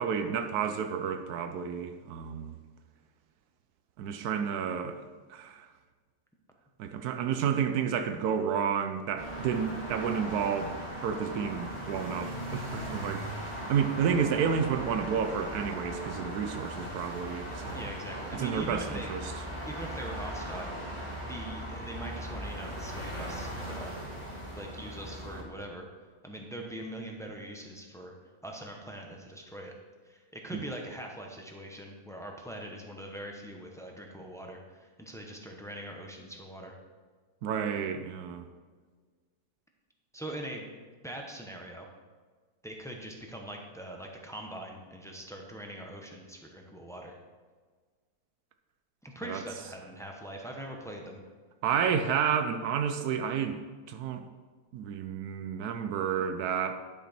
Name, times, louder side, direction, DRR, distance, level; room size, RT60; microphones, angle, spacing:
voice 1, 0.0-2.5 4.0-5.0 5.3-5.7 6.8-10.7 11.0-13.3 13.6-17.9 18.3-19.2 37.4-38.4 49.2-49.4 51.6-53.6 53.9-54.2 54.7-56.7, right 7 dB, 90° right, 7 dB, 1.2 m, -30 dB
sound 1, 9.2-25.4, right 1 dB, 20° left, 1.8 m, -38 dB
voice 2, 17.7-19.1 19.7-24.0 24.5-25.9 26.2-28.1 28.4-29.7 30.1-36.8 40.1-40.7 41.0-41.9 42.6-47.1 49.0-51.2, right 1 dB, ahead, 1 dB, 0.8 m, -42 dB
10.0 x 6.3 x 4.3 m, 1.5 s
omnidirectional pair, 1.6 m